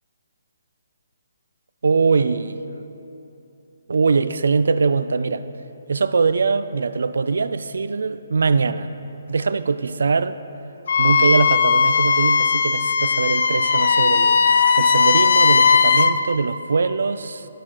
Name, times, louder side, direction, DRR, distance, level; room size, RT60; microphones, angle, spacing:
voice 1, 1.8-2.6 3.9-5.5 5.9-8.9 9.3-10.4 11.0-14.4 14.7-17.5, right 4 dB, 75° right, 13 dB, 0.3 m, -22 dB
Wind instrument woodwind instrument, 10.9-16.1, left 5 dB, 55° left, 0.3 m, -17 dB
11.5 x 4.6 x 3.8 m, 2.9 s
hypercardioid pair, 170°, 0 cm